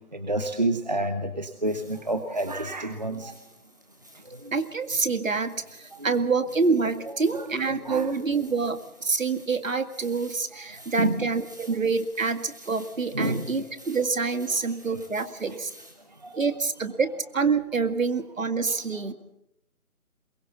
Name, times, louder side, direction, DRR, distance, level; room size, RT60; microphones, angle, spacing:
voice 1, 0.3-3.3 6.1-6.2 7.3-7.5 7.8-8.1 11.0-11.3 13.1-13.4 16.2-16.3, right 1 dB, 30° right, 8 dB, 1.0 m, -28 dB
sound 1, 1.6-16.5, equal, 15° right, 1.3 m, -53 dB
voice 2, 4.5-15.7 16.3-19.1, right 4 dB, 60° right, 9 dB, 2.1 m, -27 dB
22.5 x 21.0 x 7.1 m, 0.81 s
figure-of-eight pair, 175°, 44 cm